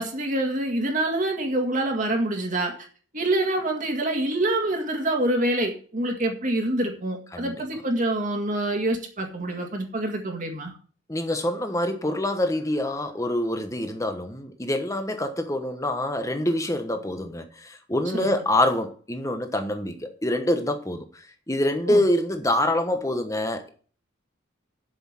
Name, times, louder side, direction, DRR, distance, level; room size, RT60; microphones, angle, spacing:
voice 1, 0.0-2.7 3.1-10.7 18.1-18.3 21.9-22.0, right 1 dB, 40° right, 3 dB, 1.9 m, -26 dB
voice 2, 11.1-23.7, left 1 dB, 15° left, 7 dB, 1.1 m, -26 dB
7.9 x 6.3 x 7.4 m, 0.42 s
head